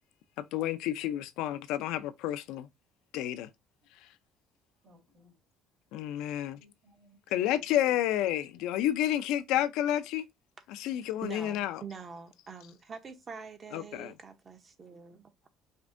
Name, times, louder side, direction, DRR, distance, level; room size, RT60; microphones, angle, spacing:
voice 1, 0.4-2.7 3.1-3.5 5.9-6.6 7.3-10.3 10.7-11.8 13.7-14.1, left 12 dB, 80° left, 0.4 m, -30 dB
voice 2, 4.8-5.4 6.3-7.9 8.6-8.7, right 1 dB, 60° right, 2.2 m, -62 dB
voice 3, 11.2-15.5, right 5 dB, 40° right, 0.8 m, -45 dB
5.1 x 2.5 x 2.6 m
supercardioid pair, 90°, 0 cm